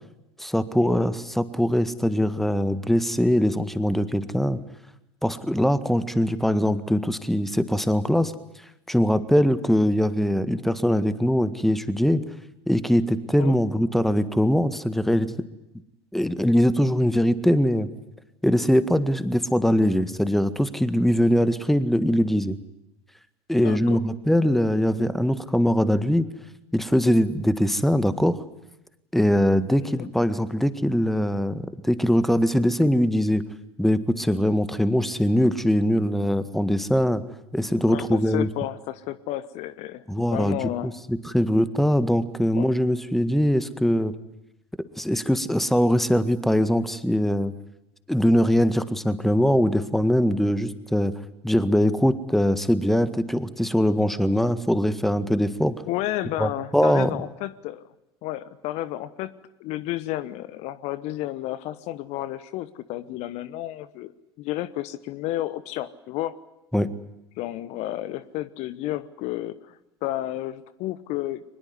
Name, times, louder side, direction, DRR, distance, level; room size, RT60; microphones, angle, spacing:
voice 1, 0.4-4.6 5.2-8.3 8.9-12.2 12.7-15.3 16.1-17.9 18.4-22.6 23.5-26.3 26.7-28.4 29.1-33.4 33.8-37.2 37.5-38.5 40.1-40.6 40.8-44.1 45.0-47.5 48.1-51.1 51.4-55.7 56.4-57.1 66.7-66.9, equal, ahead, 13 dB, 1.8 m, -22 dB
voice 2, 23.5-24.0 29.8-30.1 37.7-40.9 42.5-42.7 55.9-57.9 58.2-59.3 59.6-64.1 64.4-66.4 67.4-71.4, left 14 dB, 55° left, 16 dB, 1.2 m, -32 dB
23.5 x 21.0 x 9.6 m, 0.89 s
hypercardioid pair, 80°, 14 cm